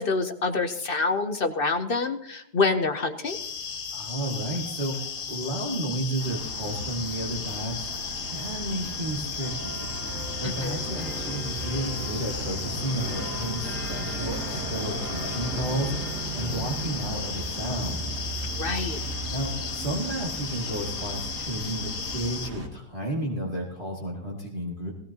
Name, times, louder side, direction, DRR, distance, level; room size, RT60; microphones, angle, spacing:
voice 1, 0.0-3.4 10.4-10.8 18.6-19.0, left 3 dB, 50° left, 8 dB, 0.7 m, -26 dB
sound 1, 3.2-22.5, left 6 dB, 85° left, 2.0 m, -35 dB
voice 2, 3.9-9.9 10.4-18.3 19.3-24.9, right 1 dB, 30° right, -3 dB, 2.1 m, -32 dB
sound 2, 6.2-22.7, right 2 dB, 80° right, 2.7 m, -36 dB
18.0 x 16.5 x 2.9 m, 0.78 s
omnidirectional pair, 1.7 m